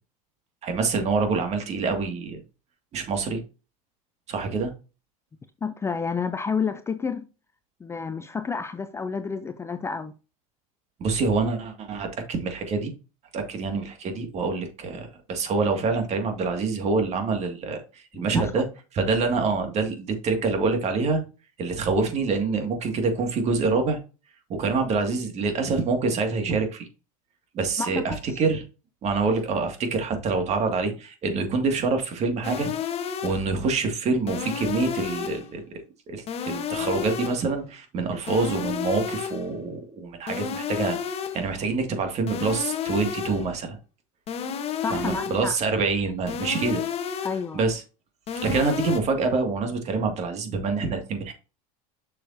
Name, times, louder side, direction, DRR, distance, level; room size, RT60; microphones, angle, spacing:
voice 1, 0.6-2.4 2.9-3.4 4.3-4.7 11.0-12.9 13.3-18.7 18.9-21.2 21.6-24.0 24.5-26.9 27.5-28.6 29.0-32.7 33.2-43.8 44.9-46.8 47.2-47.3 47.5-47.8 48.4-51.3, right 4 dB, 40° right, 2.0 m, -26 dB
voice 2, 5.6-7.2 7.8-10.1 18.1-18.4 27.8-28.0 44.8-45.5 47.2-47.6, left 5 dB, 15° left, 0.4 m, -30 dB
sound 1, 32.4-33.5 34.3-35.5 36.3-37.5 38.3-39.5 40.3-41.5 42.3-43.5 44.3-45.5 46.3-47.5 48.3-49.0, left 8 dB, 35° left, 1.1 m, -31 dB
6.9 x 6.5 x 2.7 m
supercardioid pair, 115°, 18 cm